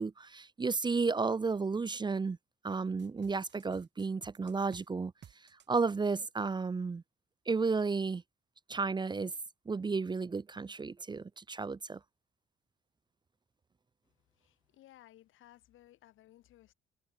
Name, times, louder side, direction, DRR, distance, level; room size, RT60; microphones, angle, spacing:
voice 1, 0.0-2.4 2.6-5.1 5.7-7.0 7.5-8.2 8.7-9.3 9.7-12.0, right 4 dB, 20° right, 0.6 m, -32 dB
sound 1, 3.0-4.9 5.2-5.7, right 9 dB, 65° right, 5.3 m, -56 dB
voice 2, 14.4-16.7, left 14 dB, 85° left, 2.9 m, -59 dB
cardioid pair, 90°, 20 cm